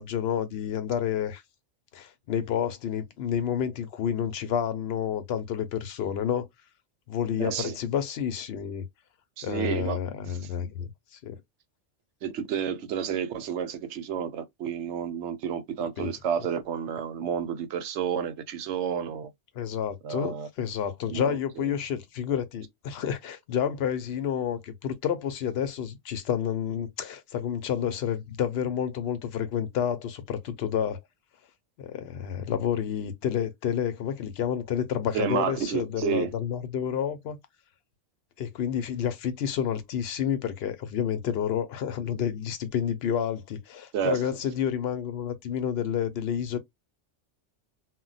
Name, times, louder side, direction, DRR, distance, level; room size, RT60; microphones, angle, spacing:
voice 1, 0.0-1.4 1.9-6.5 7.1-8.8 9.4-10.9 11.2-11.4 16.0-16.1 19.6-31.0 31.8-37.4 38.4-46.6, left 8 dB, 65° left, 0.8 m, -29 dB
voice 2, 7.4-7.8 9.4-10.0 12.2-19.3 20.0-20.5 21.1-21.8 35.1-36.3 43.9-44.4, right 8 dB, 70° right, 0.9 m, -30 dB
2.2 x 2.2 x 3.8 m
omnidirectional pair, 1.3 m